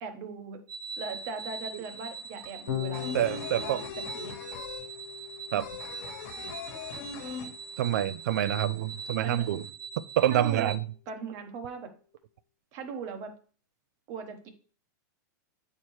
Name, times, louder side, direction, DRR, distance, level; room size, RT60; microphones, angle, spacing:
voice 1, 0.0-0.6 1.0-4.4 6.4-6.6 9.2-9.5 10.3-10.7 11.1-11.9 12.7-13.3 14.1-14.5, right 5 dB, 35° right, 0.9 m, -39 dB
sound 1, 0.7-10.8, right 5 dB, 85° right, 0.8 m, -42 dB
sound 2, 1.2-1.3 1.5-8.1 8.4-8.5 8.8-9.6, left 6 dB, 50° left, 1.5 m, -41 dB
Electric guitar / Bass guitar, 2.7-9.1, left 11 dB, 75° left, 1.3 m, -41 dB
voice 2, 3.1-3.8 5.5-5.7 7.8-9.6 10.2-10.8, right 12 dB, 60° right, 0.4 m, -27 dB
8.5 x 4.5 x 3.1 m
supercardioid pair, 165°, 10 cm